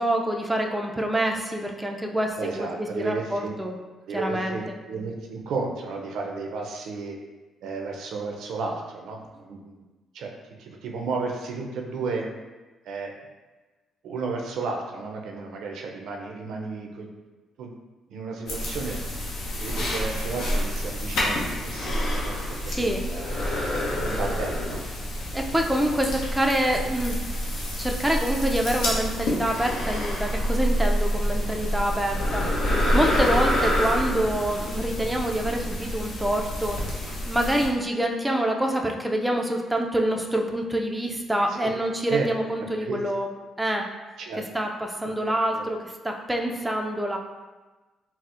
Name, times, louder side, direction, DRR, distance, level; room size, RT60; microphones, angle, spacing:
voice 1, 0.0-2.7 2.9-3.7 4.1-4.6 22.7-23.0 25.3-27.4 27.8-43.3 43.6-43.9 44.5-47.2, right 1 dB, 5° right, 1 dB, 0.3 m, -26 dB
voice 2, 2.4-3.5 4.1-7.2 7.6-9.8 10.1-10.3 10.6-12.3 12.9-13.1 14.0-17.1 17.6-17.7 18.1-19.0 19.4-23.3 24.0-24.8 41.6-41.7 42.1-42.3 42.8-43.0 44.2-44.4 45.0-45.1 45.5-45.7, right 4 dB, 80° right, 1 dB, 0.4 m, -33 dB
sound 1, 18.5-37.7, equal, 75° left, 0.7 m, -27 dB
4.1 x 2.0 x 2.4 m, 1.2 s
cardioid pair, 90°, 0 cm